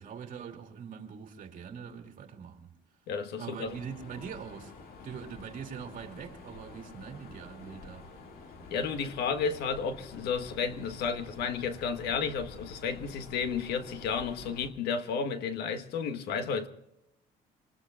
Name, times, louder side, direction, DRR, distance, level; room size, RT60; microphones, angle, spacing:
voice 1, 0.0-2.7 3.4-4.7 5.0-8.1, right 7 dB, 50° right, 2.6 m, -43 dB
voice 2, 3.1-3.8 8.7-16.7, left 6 dB, 80° left, 1.4 m, -32 dB
Mechanisms, 3.6-14.7, left 3 dB, 60° left, 2.3 m, -49 dB
26.5 x 20.0 x 2.4 m
cardioid pair, 110°, 17 cm